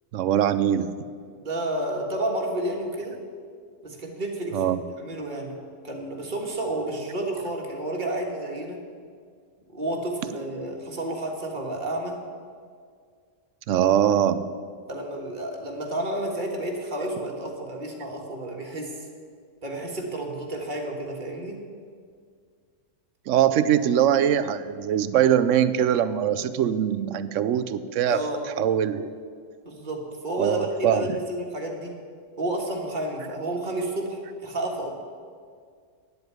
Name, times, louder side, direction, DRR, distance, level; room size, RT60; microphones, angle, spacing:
voice 1, 0.1-0.9 4.5-4.8 13.7-14.4 23.3-28.2 28.6-29.1 30.4-31.1, right 10 dB, 80° right, 13 dB, 0.9 m, -22 dB
voice 2, 1.4-3.2 3.8-8.8 9.7-12.2 14.9-19.1 19.6-21.6 28.1-28.5 29.7-32.0 32.4-34.9, right 1 dB, 40° right, 0 dB, 1.8 m, -31 dB
9.4 x 8.0 x 9.2 m, 2.1 s
omnidirectional pair, 1.3 m